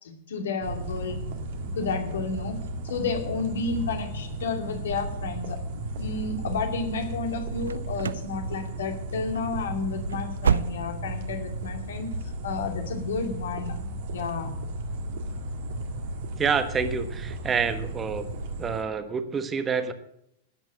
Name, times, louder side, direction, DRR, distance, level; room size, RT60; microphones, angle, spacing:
voice 1, 0.0-1.2 1.8-2.6 2.8-5.6 6.0-12.1 12.4-13.8 14.1-14.5, left 4 dB, 70° left, 4 dB, 2.4 m, -31 dB
sound 1, 0.6-18.8, right 2 dB, 60° right, 1.9 m, -34 dB
sound 2, 7.6-8.3 8.6-9.0 9.3-9.5 9.9-11.2 11.5-11.6 12.1-12.2, right 7 dB, 75° right, 0.4 m, -28 dB
voice 2, 16.4-18.3 18.6-19.9, right 5 dB, 25° right, 10 dB, 1.2 m, -27 dB
12.5 x 8.8 x 7.7 m, 0.78 s
figure-of-eight pair, 95°, 0 cm